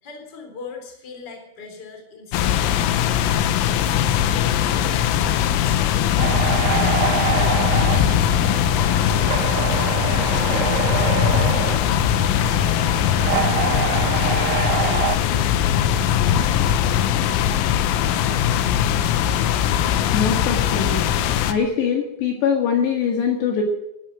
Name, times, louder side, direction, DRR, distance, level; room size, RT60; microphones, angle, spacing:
voice 1, 0.0-3.1 3.6-5.5 10.0-12.2 12.6-13.0 13.2-14.0 14.2-16.4, left 3 dB, 25° left, 4 dB, 3.6 m, -40 dB
sound 1, 2.3-21.5, left 10 dB, 85° left, 3.6 m, -20 dB
sound 2, 6.2-15.2, right 10 dB, 75° right, 3.0 m, -26 dB
voice 2, 20.1-21.0 21.5-23.6, left 7 dB, 65° left, 2 dB, 3.7 m, -22 dB
15.5 x 11.5 x 7.7 m, 0.85 s
omnidirectional pair, 5.8 m